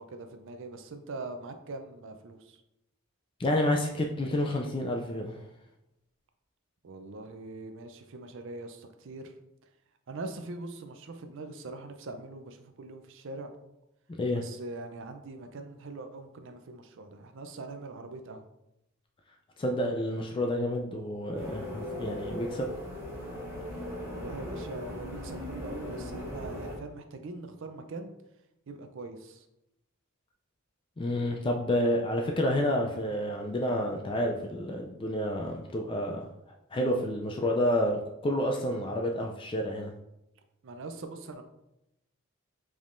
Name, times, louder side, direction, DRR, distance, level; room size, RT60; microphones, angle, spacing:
voice 1, 0.0-2.6 6.8-9.3 10.1-13.5 14.3-18.5 24.1-28.1 28.7-29.5 40.6-41.4, right 2 dB, 60° right, 6 dB, 0.5 m, -42 dB
voice 2, 3.4-5.4 14.2-14.4 19.6-22.7 31.0-36.3 36.7-39.9, left 1 dB, 25° left, 2 dB, 0.3 m, -29 dB
sound 1, 21.3-26.8, left 1 dB, 10° right, 1.0 m, -38 dB
5.1 x 3.5 x 2.5 m, 0.88 s
head